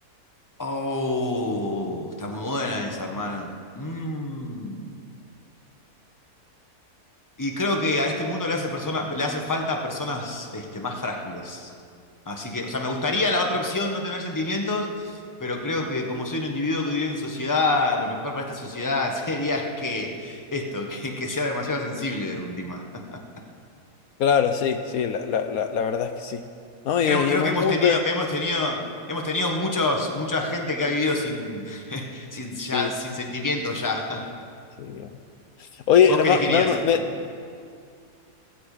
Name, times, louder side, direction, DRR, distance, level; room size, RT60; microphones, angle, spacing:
voice 1, 0.6-3.5 3.7-4.8 7.4-11.7 12.3-23.2 27.0-28.8 29.1-34.2 36.1-37.0, left 2 dB, 15° left, 2 dB, 1.2 m, -27 dB
voice 2, 24.2-26.4 26.8-28.0 32.7-32.9 34.8-35.1 35.9-37.0, left 7 dB, 70° left, 8 dB, 1.1 m, -21 dB
15.5 x 15.0 x 5.0 m, 2.3 s
omnidirectional pair, 1.7 m